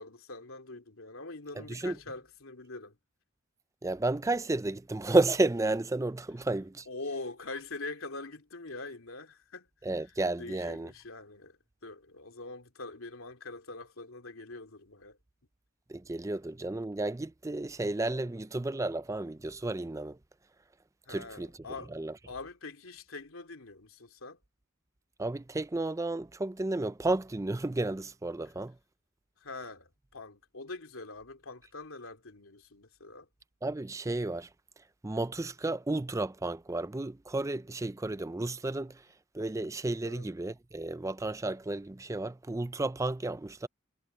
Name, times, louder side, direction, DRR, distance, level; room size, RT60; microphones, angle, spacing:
voice 1, 0.0-3.0 6.9-9.7 10.0-10.1 10.4-15.2 18.2-18.4 21.1-24.4 29.4-33.3 40.0-40.3, left 3 dB, 75° left, 3.1 m, -44 dB
voice 2, 1.6-2.0 3.8-6.9 9.8-10.9 15.9-20.2 21.1-21.5 21.9-22.1 25.2-28.8 33.6-34.5 35.0-39.0 39.3-43.7, right 2 dB, 15° right, 0.4 m, -32 dB
head